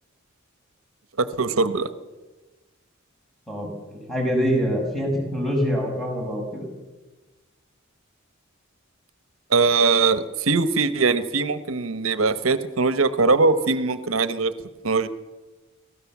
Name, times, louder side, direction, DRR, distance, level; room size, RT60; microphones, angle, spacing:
voice 1, 1.2-1.9 9.5-14.5 14.8-15.1, right 4 dB, 80° right, 13 dB, 1.1 m, -21 dB
voice 2, 3.5-6.7, equal, ahead, 0 dB, 5.7 m, -25 dB
24.5 x 17.0 x 7.3 m, 1.2 s
head